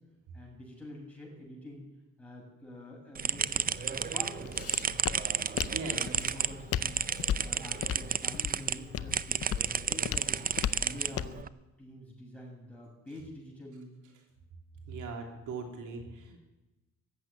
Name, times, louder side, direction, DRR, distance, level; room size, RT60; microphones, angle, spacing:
voice 1, 0.3-1.8 2.2-3.6 3.9-4.5 5.9-7.1 7.4-10.4 10.8-11.4 11.8-14.0, equal, 5° left, -2 dB, 7.2 m, -47 dB
sound 1, 3.1-8.8 9.1-11.5, right 7 dB, 30° right, 0.5 m, -32 dB
Walk footsteps, 3.4-11.4, left 9 dB, 50° left, 0.6 m, -37 dB
voice 2, 5.5-6.1 14.8-16.4, right 4 dB, 80° right, 3 dB, 3.0 m, -40 dB
14.5 x 8.1 x 9.8 m, 1.1 s
cardioid pair, 90°, 30 cm